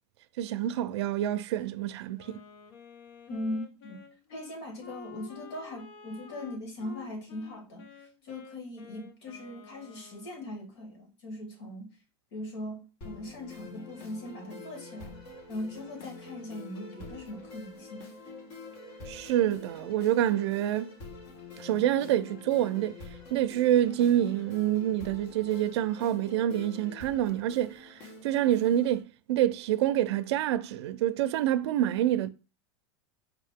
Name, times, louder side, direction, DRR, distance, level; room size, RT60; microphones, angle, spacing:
voice 1, 0.4-2.4 19.1-20.9 21.6-23.0 23.3-27.9 28.2-32.3, right 12 dB, 80° right, 0.4 m, -27 dB
Wind instrument woodwind instrument, 2.2-10.6, left 6 dB, 60° left, 1.0 m, -51 dB
voice 2, 3.3-7.9 8.2-11.9 12.3-15.2 15.5-18.1, left 1 dB, 85° left, 2.6 m, -40 dB
sound 1, 13.0-29.0, left 3 dB, 40° left, 1.4 m, -46 dB
4.8 x 2.8 x 3.5 m
supercardioid pair, 155°, 14 cm